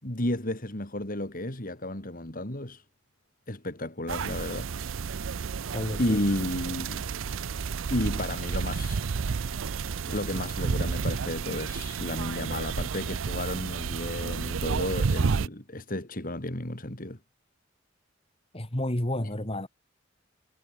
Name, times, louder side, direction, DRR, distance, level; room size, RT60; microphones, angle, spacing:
voice 1, 0.0-2.8 3.5-4.7 6.0-7.1 7.9-9.0 10.1-17.2, left 1 dB, 45° left, 3.9 m, -32 dB
sound 1, 4.1-15.5, right 5 dB, 80° right, 0.6 m, -31 dB
voice 2, 5.7-6.2 18.5-19.7, left 1 dB, 30° left, 2.6 m, -30 dB
head